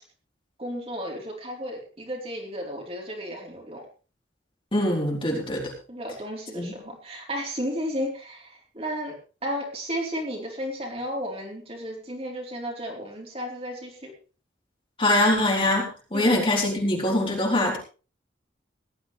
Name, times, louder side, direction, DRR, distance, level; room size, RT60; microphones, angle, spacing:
voice 1, 0.6-3.9 5.9-9.1 9.4-14.1 16.1-16.3, equal, 30° right, -1 dB, 4.2 m, -33 dB
voice 2, 4.7-5.7 6.6-6.7 15.0-17.8, left 1 dB, 25° left, -1 dB, 4.2 m, -23 dB
18.5 x 13.0 x 3.5 m, 0.35 s
head